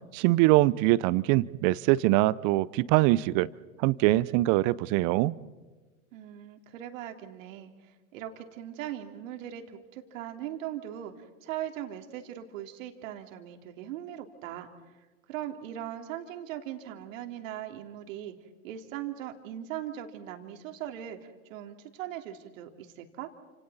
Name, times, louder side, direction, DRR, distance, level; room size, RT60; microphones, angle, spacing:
voice 1, 0.1-3.5 3.8-5.3, right 18 dB, 45° right, 20 dB, 0.8 m, -23 dB
voice 2, 6.1-7.7 8.1-14.7 15.3-18.3 18.6-23.3, right 11 dB, 65° right, 4 dB, 3.0 m, -39 dB
29.5 x 27.5 x 4.2 m, 1.3 s
hypercardioid pair, 100°, 42 cm